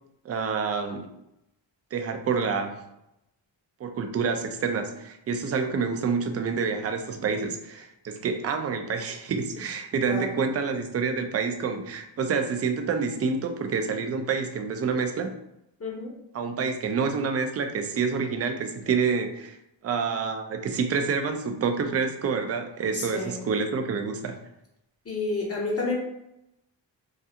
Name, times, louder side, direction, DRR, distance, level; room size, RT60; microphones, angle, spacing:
voice 1, 0.2-1.1 1.9-2.8 3.8-15.3 16.3-19.6 19.8-24.4, right 5 dB, 35° right, 6 dB, 0.4 m, -28 dB
voice 2, 15.8-16.2 22.9-23.3 25.1-25.9, left 3 dB, 30° left, -3 dB, 0.8 m, -30 dB
2.4 x 2.3 x 2.7 m, 0.83 s
cardioid pair, 65°, 45 cm